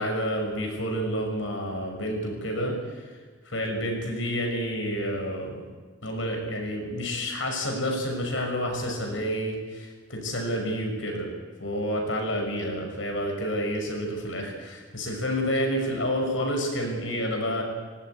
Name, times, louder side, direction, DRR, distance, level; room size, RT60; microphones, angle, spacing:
voice 1, 0.0-2.8 3.5-5.6 6.0-11.3 11.6-17.6, equal, 80° left, 2 dB, 6.2 m, -29 dB
19.5 x 18.5 x 9.4 m, 1.5 s
head